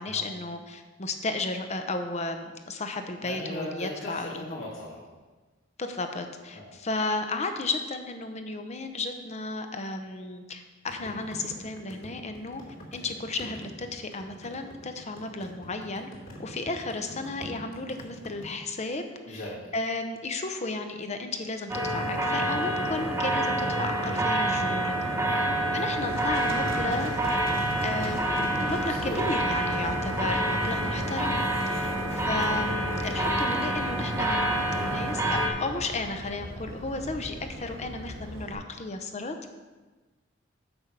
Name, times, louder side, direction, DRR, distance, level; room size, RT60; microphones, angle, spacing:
voice 1, 0.0-4.6 5.8-12.6 12.9-16.1 16.4-25.0 25.7-27.1 27.8-39.4, left 3 dB, 35° left, 6 dB, 0.8 m, -33 dB
voice 2, 3.2-5.0 6.5-6.6 19.2-19.5 25.2-25.9 28.9-29.2 31.8-32.1, left 1 dB, 85° left, -6 dB, 2.7 m, -38 dB
sound 1, 10.9-18.5, left 1 dB, 55° left, 2.9 m, -44 dB
sound 2, 21.7-35.5, right 1 dB, 15° right, 1.1 m, -27 dB
Livestock farm animals working animals, 26.0-38.5, right 1 dB, 75° right, 1.6 m, -40 dB
7.3 x 7.0 x 5.3 m, 1.3 s
head